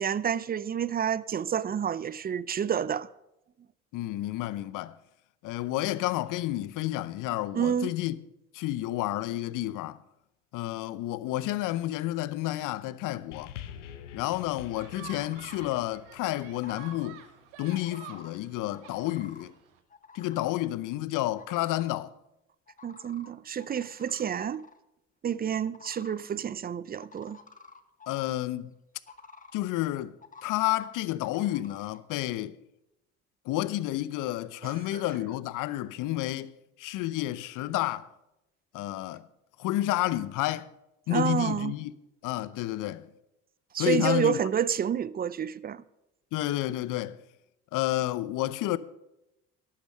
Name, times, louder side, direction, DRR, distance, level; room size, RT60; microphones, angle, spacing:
voice 1, 0.0-3.1 7.5-7.9 22.8-24.6 25.2-27.4 34.6-35.0 41.1-41.7 43.7-45.8, right 8 dB, 25° right, 0.5 m, -29 dB
voice 2, 3.9-5.0 5.4-8.2 8.5-10.0 10.5-13.5 14.1-17.2 17.6-19.5 20.1-22.1 28.1-28.7 29.5-30.1 30.4-32.6 33.5-36.5 36.8-38.1 38.7-39.3 39.6-40.7 41.1-41.9 42.2-43.1 43.8-44.4 46.3-47.2 47.7-48.8, left 15 dB, 60° left, 0.8 m, -30 dB
sound 1, 13.3-17.9 18.7-18.8, left 10 dB, 85° left, 1.0 m, -47 dB
sound 2, 14.7-19.8, right 11 dB, 75° right, 1.3 m, -50 dB
sound 3, 15.2-15.8 16.5-17.1 17.7-18.3 18.7-19.4 19.9-20.6 21.4-21.9 22.7-23.3 23.6-24.8 25.6-26.2 27.0-28.3 29.1-29.6 30.2-30.9 31.2-32.0, left 4 dB, 20° left, 1.3 m, -50 dB
11.5 x 8.8 x 6.6 m
hypercardioid pair, 65°, 36 cm